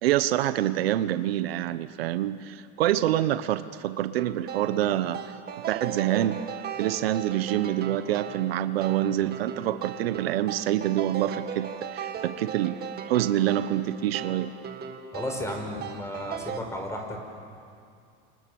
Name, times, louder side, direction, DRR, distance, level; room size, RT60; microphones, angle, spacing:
voice 1, 0.0-5.2 5.7-6.4 6.8-12.8 13.1-14.5, right 13 dB, 85° right, 13 dB, 1.1 m, -26 dB
sound 1, 4.2-16.6, right 7 dB, 35° right, 2.0 m, -37 dB
voice 2, 15.1-17.2, left 1 dB, 10° left, 3 dB, 5.7 m, -34 dB
29.5 x 27.0 x 7.1 m, 2.4 s
supercardioid pair, 120°, 29 cm